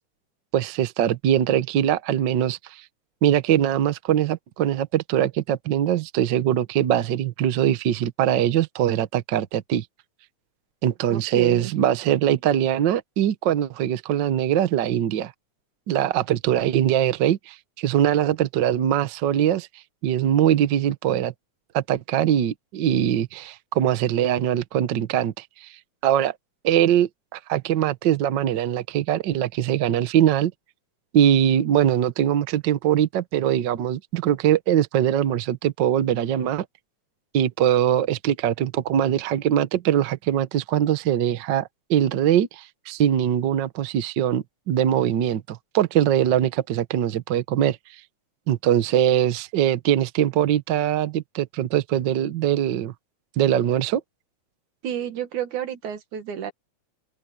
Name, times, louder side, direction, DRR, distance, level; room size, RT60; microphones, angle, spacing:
voice 1, 0.5-2.8 3.2-9.8 10.8-15.3 15.9-19.7 20.0-21.3 21.7-25.7 26.0-26.3 26.6-30.5 31.1-36.6 37.3-47.8 48.5-52.9 53.4-54.0, right 10 dB, 65° right, 1.1 m, -22 dB
voice 2, 11.1-11.7 54.8-56.5, right 9 dB, 85° right, 3.2 m, -30 dB
open air
omnidirectional pair, 3.4 m